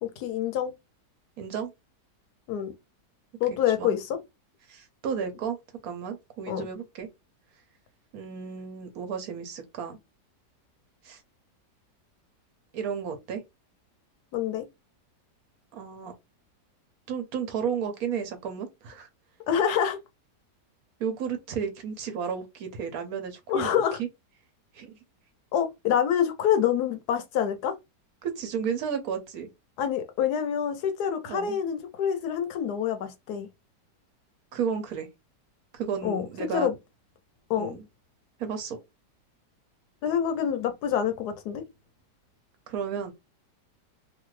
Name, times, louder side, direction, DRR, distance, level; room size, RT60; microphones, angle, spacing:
voice 1, 0.0-0.7 2.5-2.7 3.4-4.2 6.5-6.7 14.3-14.6 19.5-20.0 23.5-24.0 25.5-27.7 29.8-33.5 36.0-36.3 36.5-36.7 37.5-37.8 40.0-41.6, left 9 dB, 75° left, 1.1 m, -26 dB
voice 2, 1.4-1.7 3.8-4.0 4.7-5.6 5.8-7.1 8.1-10.0 11.0-11.2 12.7-13.4 15.7-16.1 17.1-19.1 21.0-24.1 24.7-25.0 28.2-29.5 31.3-31.6 34.5-35.1 35.7-36.7 37.6-37.8 38.4-38.8 42.7-43.1, right 7 dB, 65° right, 1.0 m, -33 dB
2.8 x 2.5 x 3.0 m
omnidirectional pair, 1.8 m